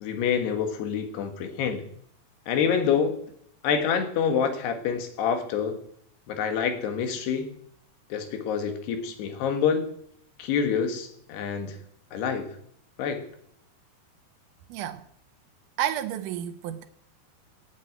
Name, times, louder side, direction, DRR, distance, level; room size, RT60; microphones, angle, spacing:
voice 1, 0.0-1.8 2.5-3.1 3.6-5.8 6.3-7.5 8.1-9.8 10.4-11.8 12.1-12.5 13.0-13.2, left 7 dB, 85° left, 3.6 m, -27 dB
voice 2, 14.7-15.0 15.8-16.8, right 11 dB, 75° right, 1.9 m, -30 dB
16.5 x 7.8 x 8.9 m
omnidirectional pair, 4.6 m